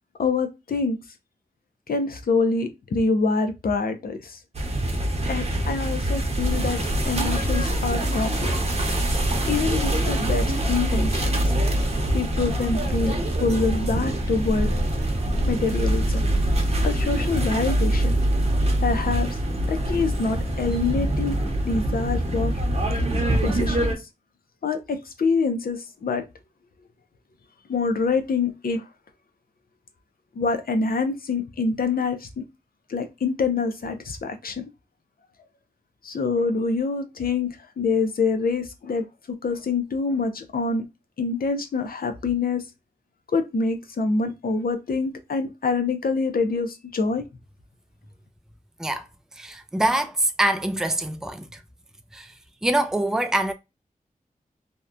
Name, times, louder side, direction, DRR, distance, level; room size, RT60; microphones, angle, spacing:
voice 1, 0.2-1.0 1.9-4.4 5.3-6.8 7.0-8.6 9.4-11.3 12.1-14.7 15.4-16.3 16.8-18.2 18.8-19.4 19.7-21.4 21.6-22.5 23.4-23.9 24.6-26.2 27.7-28.9 30.3-32.4 32.9-34.6 36.0-39.0 39.4-40.9 41.2-42.6 43.3-47.2, left 4 dB, 75° left, 0.5 m, -25 dB
sound 1, 4.5-23.9, right 1 dB, 45° right, 0.8 m, -24 dB
voice 2, 49.4-51.6 52.1-52.3 52.6-53.5, right 1 dB, 5° right, 0.3 m, -24 dB
2.8 x 2.1 x 2.3 m
wide cardioid pair, 80°, 15 cm